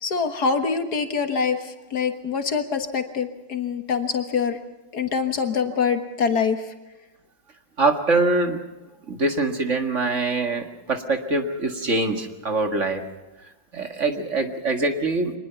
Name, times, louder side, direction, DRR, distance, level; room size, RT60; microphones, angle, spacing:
voice 1, 0.0-4.6 4.9-6.6, left 5 dB, 60° left, 7 dB, 2.0 m, -24 dB
voice 2, 7.8-8.6 9.1-13.0 13.7-15.3, right 3 dB, 40° right, 5 dB, 2.1 m, -23 dB
24.5 x 20.5 x 5.8 m, 1.1 s
omnidirectional pair, 2.0 m